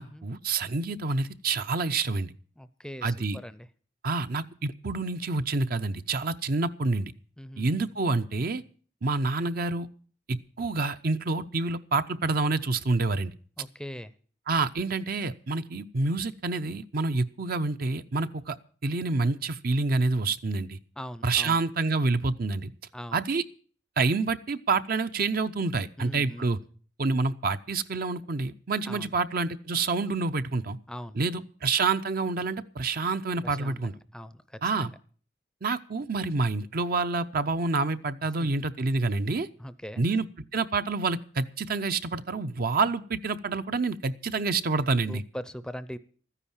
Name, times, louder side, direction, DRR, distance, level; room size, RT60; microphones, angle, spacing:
voice 1, 0.0-2.3 3.0-3.4 4.0-7.1 7.6-8.6 9.0-9.9 10.3-13.3 14.5-18.6 18.8-20.8 21.2-22.7 23.1-23.4 24.0-26.6 27.0-30.8 31.2-33.9 34.6-34.9 35.6-39.5 40.0-40.3 40.5-45.2, right 3 dB, 55° right, 10 dB, 0.7 m, -28 dB
voice 2, 2.6-3.7 7.4-7.8 13.6-14.1 21.0-21.6 22.9-23.2 26.0-26.6 28.9-29.1 30.9-31.2 33.4-35.0 38.4-38.5 39.6-40.0 45.1-46.0, equal, 5° left, 14 dB, 0.6 m, -41 dB
13.5 x 10.0 x 7.2 m, 0.43 s
head